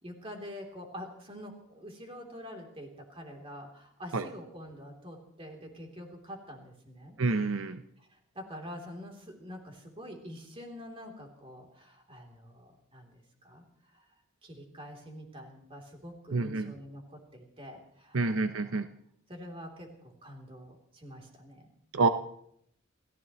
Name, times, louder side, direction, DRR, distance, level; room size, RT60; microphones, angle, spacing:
voice 1, 0.0-7.2 8.0-14.1 14.4-18.8 19.3-21.7, equal, 25° right, 1 dB, 3.3 m, -46 dB
voice 2, 7.2-7.8 16.3-16.7 18.1-18.9 21.9-22.1, right 3 dB, 75° right, 9 dB, 0.8 m, -27 dB
29.0 x 15.0 x 3.1 m, 0.70 s
head